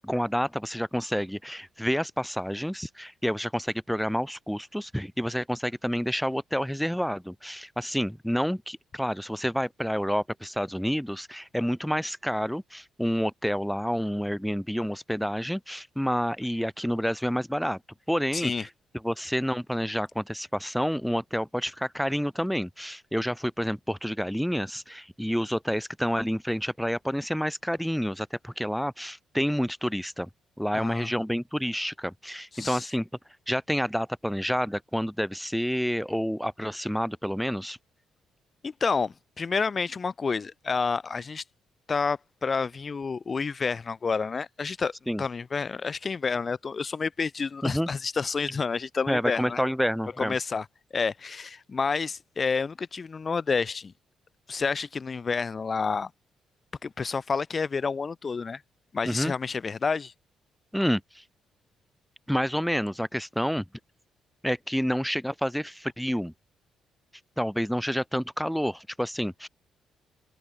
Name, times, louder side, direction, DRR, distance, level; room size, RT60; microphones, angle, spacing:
voice 1, 0.0-17.8 18.1-18.7 19.0-30.3 30.6-33.1 33.5-37.8 45.1-45.2 47.6-47.9 49.1-50.3 59.0-59.3 60.7-61.2 62.3-63.6 64.4-66.3 67.4-69.5, equal, ahead, 0.5 m, -29 dB
voice 2, 18.3-18.6 30.7-31.1 32.5-32.9 38.6-41.4 41.9-44.9 45.2-49.6 50.2-50.7 50.9-53.9 54.5-56.1 56.8-58.6 58.9-60.1, left 5 dB, 35° left, 2.5 m, -29 dB
cardioid pair, 90°, 0 cm